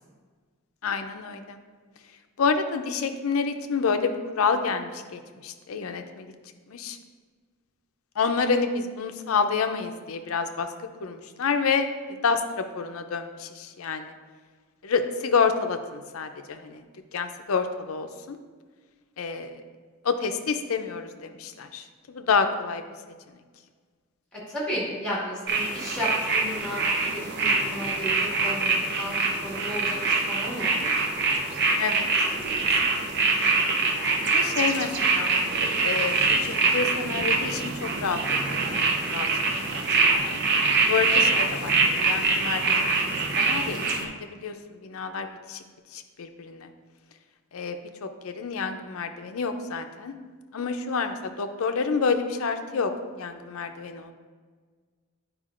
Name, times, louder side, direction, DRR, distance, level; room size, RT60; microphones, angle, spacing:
voice 1, 0.8-1.6 2.4-6.3 6.7-7.0 8.2-10.7 11.0-14.1 14.8-16.8 17.1-18.4 19.2-19.6 20.0-22.8 31.8-32.1 32.8-33.3 34.2-38.8 39.1-39.3 39.7-40.4 40.9-44.5 44.8-45.6 45.9-46.7 47.5-50.1 50.5-52.9 53.2-54.1, left 5 dB, 75° left, 7 dB, 0.5 m, -28 dB
voice 2, 24.3-29.2 29.4-30.9, equal, 5° left, -6 dB, 1.7 m, -33 dB
sound 1, 25.5-44.1, right 3 dB, 50° right, 0.6 m, -24 dB
9.7 x 4.9 x 2.5 m, 1.5 s
head